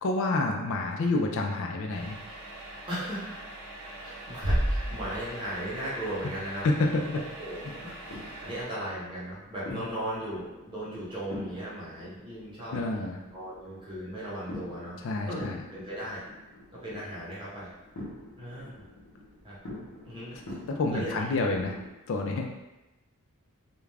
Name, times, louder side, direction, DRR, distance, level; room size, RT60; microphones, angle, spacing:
voice 1, 0.0-2.2 6.6-7.2 9.7-9.8 12.7-13.2 15.0-15.6 20.3-20.4 20.7-21.7 22.1-22.5, left 2 dB, 60° left, 2 dB, 0.4 m, -28 dB
sound 1, 1.9-8.6, right 1 dB, 65° right, 0.6 m, -43 dB
voice 2, 2.9-3.4 3.8-6.7 7.1-8.0 8.2-12.7 13.3-15.0 15.3-16.2 16.7-17.7 18.4-18.9 19.4-19.6 20.1-20.4 20.9-21.2, right 1 dB, 20° right, -8 dB, 0.9 m, -37 dB
Bass drum, 4.4-5.9, equal, 40° left, 0.8 m, -29 dB
sound 2, 7.4-21.9, left 1 dB, 90° left, 0.8 m, -46 dB
2.4 x 2.2 x 3.2 m, 1.0 s
head